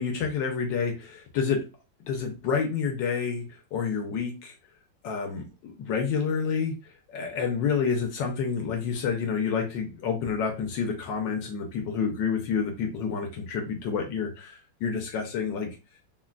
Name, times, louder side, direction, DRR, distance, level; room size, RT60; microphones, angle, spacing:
voice 1, 0.0-1.6 2.1-3.4 3.7-4.5 5.0-6.7 7.1-15.7, left 6 dB, 75° left, 2 dB, 1.3 m, -29 dB
3.7 x 2.2 x 2.3 m, 0.30 s
omnidirectional pair, 2.1 m